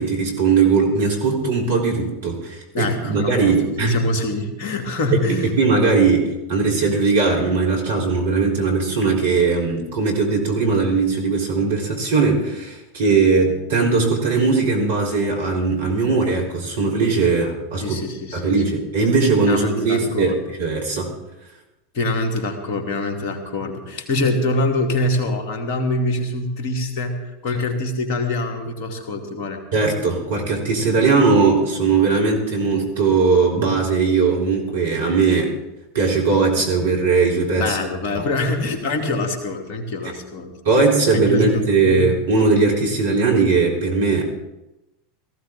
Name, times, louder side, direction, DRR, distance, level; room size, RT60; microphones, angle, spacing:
voice 1, 0.0-4.0 5.3-18.0 18.3-21.1 29.7-35.5 35.9-37.8 40.6-44.2, right 4 dB, 65° right, -1 dB, 3.5 m, -19 dB
voice 2, 2.7-5.5 17.8-18.7 19.4-20.4 21.9-29.6 37.5-40.8 41.1-42.1, left 2 dB, 50° left, 3 dB, 2.5 m, -25 dB
18.5 x 15.0 x 3.6 m, 0.96 s
figure-of-eight pair, 80°, 0 cm